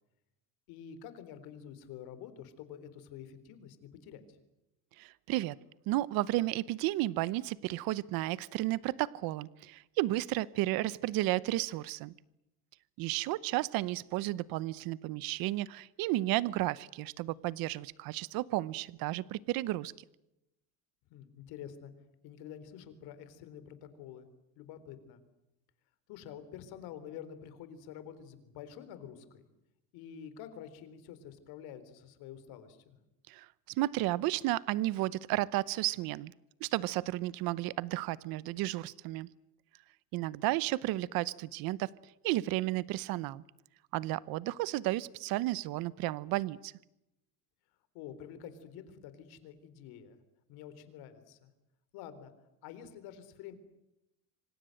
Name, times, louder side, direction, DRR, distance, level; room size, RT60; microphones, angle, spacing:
voice 1, 0.7-4.2 21.1-21.9 22.2-24.3 24.6-25.2 26.1-29.5 29.9-33.0 47.9-50.2 50.5-51.5 51.9-52.3 52.6-53.6, left 9 dB, 85° left, 12 dB, 3.9 m, -48 dB
voice 2, 5.0-5.6 5.9-12.1 13.0-19.9 33.3-33.5 33.8-36.3 36.6-39.3 40.1-41.9 42.2-43.4 43.9-46.7, right 17 dB, 75° right, 19 dB, 0.9 m, -33 dB
26.5 x 26.0 x 7.8 m, 0.89 s
cardioid pair, 165°, 36 cm